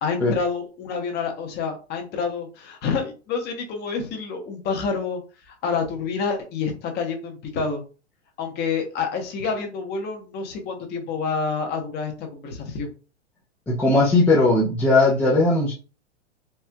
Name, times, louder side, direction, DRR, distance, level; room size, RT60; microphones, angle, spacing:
voice 1, 0.0-7.8 8.4-12.9, left 5 dB, 30° left, 3 dB, 0.9 m, -28 dB
voice 2, 13.7-15.7, left 2 dB, 5° left, -6 dB, 0.4 m, -18 dB
4.3 x 2.4 x 2.2 m, 0.34 s
hypercardioid pair, 135°, 34 cm